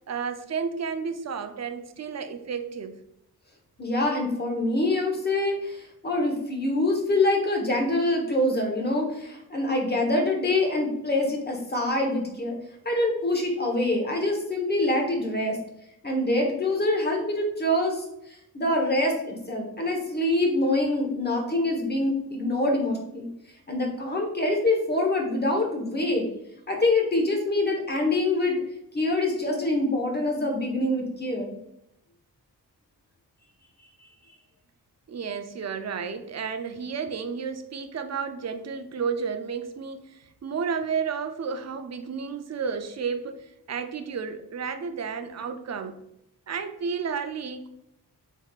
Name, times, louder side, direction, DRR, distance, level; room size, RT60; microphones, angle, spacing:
voice 1, 0.1-3.0 35.1-46.0 46.5-47.7, right 6 dB, 45° right, 8 dB, 0.5 m, -32 dB
voice 2, 3.8-12.6 12.8-15.6 16.0-18.0 18.5-23.3 23.7-26.3 26.7-28.6 28.9-31.5, left 2 dB, 25° left, 1 dB, 1.1 m, -25 dB
4.1 x 3.5 x 2.4 m, 0.79 s
cardioid pair, 60°, 39 cm